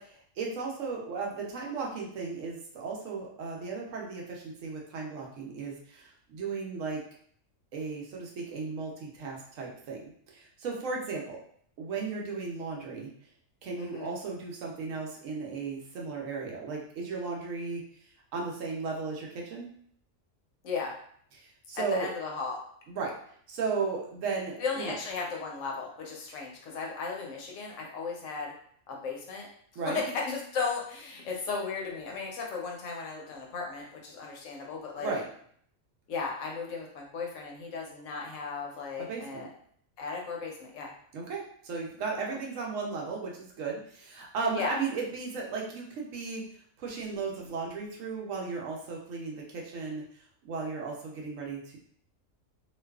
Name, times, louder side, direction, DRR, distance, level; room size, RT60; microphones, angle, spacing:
voice 1, 0.0-7.0 7.7-11.4 11.8-13.1 13.6-17.8 18.3-19.7 21.4-22.1 22.9-23.1 23.5-25.0 29.8-30.0 35.0-35.3 39.0-39.5 41.1-46.4 46.8-50.0 50.4-51.8, right 4 dB, 75° right, -1 dB, 1.0 m, -35 dB
voice 2, 13.8-14.2 20.6-20.9 21.8-22.6 24.6-28.5 28.9-29.5 29.7-35.1 36.1-39.5 40.0-40.9 44.5-44.8, left 4 dB, 75° left, -1 dB, 0.9 m, -35 dB
2.5 x 2.3 x 2.3 m, 0.62 s
omnidirectional pair, 1.4 m